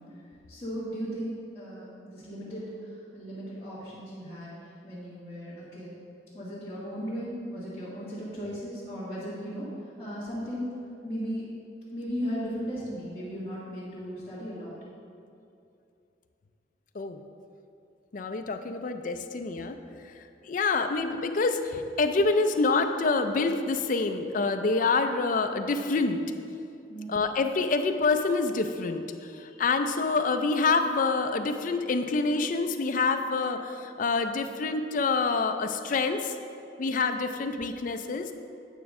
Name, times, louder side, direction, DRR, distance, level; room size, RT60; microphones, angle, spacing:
voice 1, 0.5-6.0 6.3-11.4 11.9-14.7 26.9-27.2, equal, 15° left, -15 dB, 1.9 m, -36 dB
voice 2, 18.1-19.8 20.4-26.2 27.1-36.4 36.8-38.3, left 3 dB, 50° left, 7 dB, 0.4 m, -27 dB
9.1 x 5.9 x 3.6 m, 2.6 s
head